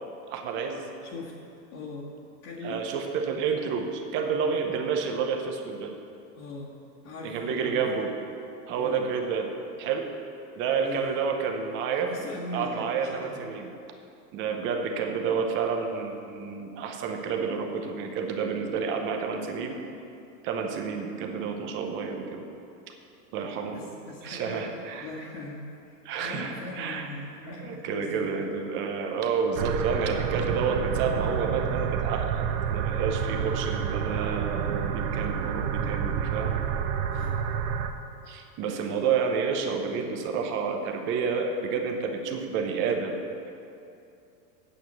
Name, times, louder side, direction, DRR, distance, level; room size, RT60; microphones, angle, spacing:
voice 1, 0.3-0.9 2.6-5.9 7.2-8.1 8.7-9.5 9.8-10.1 10.6-12.1 12.5-13.7 14.3-19.8 20.4-22.5 23.3-23.8 24.2-25.1 26.0-27.1 27.6-36.5 38.3-43.2, right 5 dB, 25° right, 4 dB, 0.7 m, -29 dB
voice 2, 1.0-1.3 1.7-2.1 2.4-2.8 6.3-6.7 7.0-7.8 8.8-9.1 10.8-11.2 12.1-13.4 23.7-28.3 37.1-37.4, left 2 dB, 45° left, -6 dB, 1.8 m, -40 dB
sound 1, 29.6-37.9, right 8 dB, 55° right, 0.8 m, -29 dB
8.7 x 6.8 x 7.9 m, 2.6 s
supercardioid pair, 150°, 49 cm